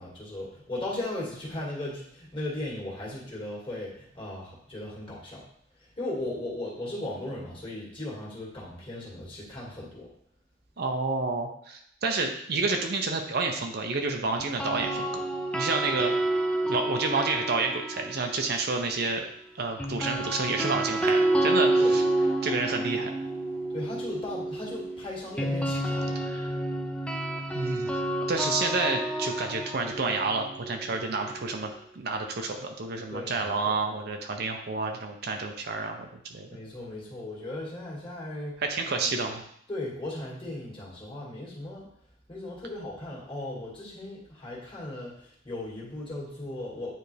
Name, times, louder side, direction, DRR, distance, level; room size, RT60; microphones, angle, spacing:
voice 1, 0.0-5.4 5.8-10.1 15.8-15.9 21.8-21.9 23.7-26.2 33.1-33.8 36.5-38.6 38.9-39.3 39.7-41.9 42.3-46.9, left 1 dB, 25° left, -5 dB, 2.0 m, -37 dB
voice 2, 10.8-15.2 15.5-16.1 16.7-19.2 19.6-22.0 22.4-23.1 26.3-26.5 27.5-27.9 28.3-36.5 38.7-39.4, right 3 dB, 55° right, 3 dB, 0.7 m, -29 dB
sound 1, 14.4-18.6 19.8-31.7, right 1 dB, 5° left, 0.5 m, -29 dB
9.2 x 3.4 x 3.3 m, 0.69 s
head